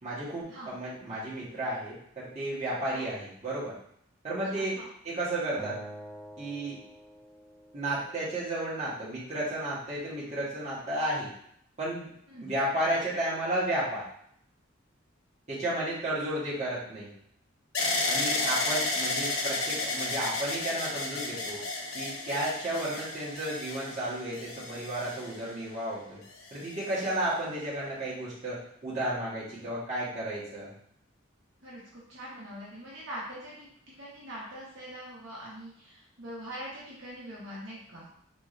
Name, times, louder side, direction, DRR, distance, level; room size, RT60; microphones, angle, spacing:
voice 1, 0.0-3.8 4.2-5.8 6.4-6.8 7.7-11.3 11.8-12.1 12.4-14.1 15.5-17.1 18.1-21.6 21.9-26.2 26.5-30.7, right 1 dB, 35° right, -9 dB, 1.3 m, -33 dB
voice 2, 4.5-4.9 12.3-12.5 31.6-38.1, equal, 65° right, -7 dB, 1.0 m, -43 dB
Acoustic guitar, 5.6-8.8, equal, 10° left, 0.3 m, -47 dB
sound 1, 17.7-25.8 26.5-27.1, left 2 dB, 85° left, 0.6 m, -32 dB
3.6 x 3.1 x 2.5 m, 0.70 s
head